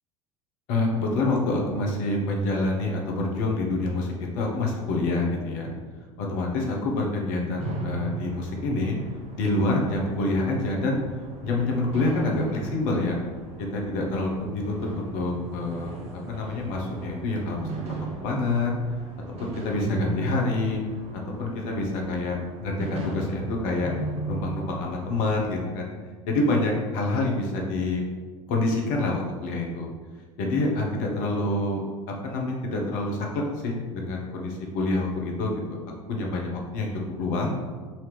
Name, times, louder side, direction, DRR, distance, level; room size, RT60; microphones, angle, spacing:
voice 1, 0.7-5.7 6.2-9.0 9.4-11.0 11.4-13.2 13.7-15.9 16.3-17.7 18.2-18.8 19.4-20.8 21.4-23.9 24.3-25.9 26.3-28.0 28.5-29.9 30.4-31.8 32.2-35.8 36.1-36.9 37.2-37.5, left 2 dB, 60° left, 0 dB, 0.9 m, -27 dB
sound 1, 7.6-25.6, right 2 dB, 40° right, 0.8 m, -37 dB
4.2 x 2.9 x 3.3 m, 1.5 s
figure-of-eight pair, 70°, 16 cm